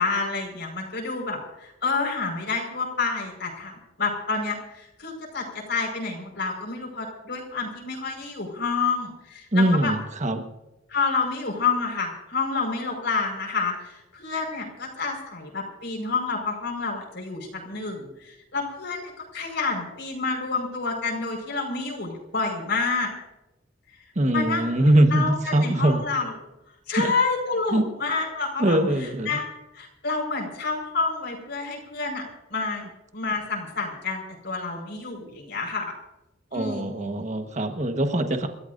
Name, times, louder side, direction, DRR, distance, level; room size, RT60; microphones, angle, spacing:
voice 1, 0.0-9.9 10.9-23.1 24.3-26.3 26.9-29.4 29.7-32.2 32.5-32.8 33.1-35.9 36.5-37.1, left 4 dB, 65° left, 1 dB, 5.0 m, -29 dB
voice 2, 9.5-10.4 24.1-26.0 27.0-27.1 27.7-27.8 28.6-29.4 36.5-38.5, right 1 dB, 40° right, 6 dB, 1.3 m, -22 dB
29.0 x 14.0 x 2.6 m, 0.93 s
head